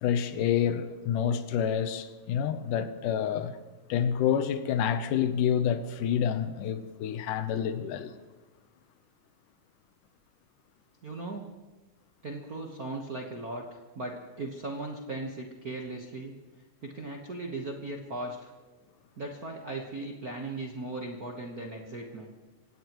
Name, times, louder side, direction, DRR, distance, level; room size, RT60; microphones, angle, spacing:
voice 1, 0.0-3.6 3.9-8.1, left 8 dB, 85° left, 2.4 m, -28 dB
voice 2, 11.0-11.4 12.2-16.3 16.8-18.5 19.2-22.3, right 2 dB, 55° right, 1.0 m, -38 dB
25.5 x 17.5 x 3.1 m
omnidirectional pair, 3.6 m